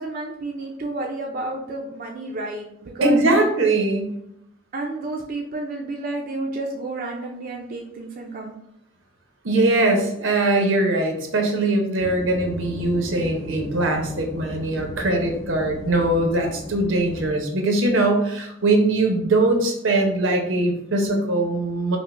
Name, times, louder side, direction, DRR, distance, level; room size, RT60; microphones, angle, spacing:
voice 1, 0.0-3.4 4.7-8.5, right 2 dB, 45° right, 0 dB, 0.4 m, -31 dB
voice 2, 3.0-4.1 9.4-22.0, right 2 dB, 80° right, 3 dB, 0.7 m, -21 dB
sound 1, 12.0-17.3, equal, 35° left, 0.9 m, -36 dB
5.0 x 2.1 x 2.5 m, 0.79 s
head